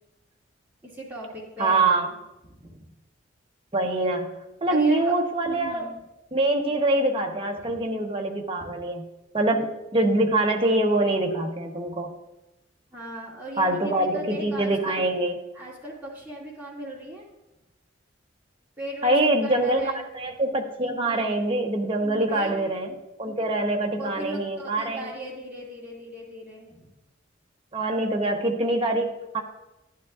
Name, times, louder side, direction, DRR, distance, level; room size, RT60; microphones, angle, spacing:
voice 1, 0.8-2.2 2.5-2.8 4.7-5.1 5.4-6.0 7.6-7.8 8.6-8.8 11.8-11.9 12.9-15.0 15.5-17.3 18.8-20.1 21.0-21.6 22.3-22.8 24.0-26.9, equal, 10° right, -6 dB, 2.2 m, -38 dB
voice 2, 1.6-2.1 3.7-4.3 4.6-5.9 6.3-9.0 9.3-12.1 13.6-15.4 19.0-19.8 20.1-25.1 27.7-29.4, right 2 dB, 30° right, 2 dB, 0.9 m, -24 dB
12.0 x 10.5 x 2.4 m, 0.97 s
head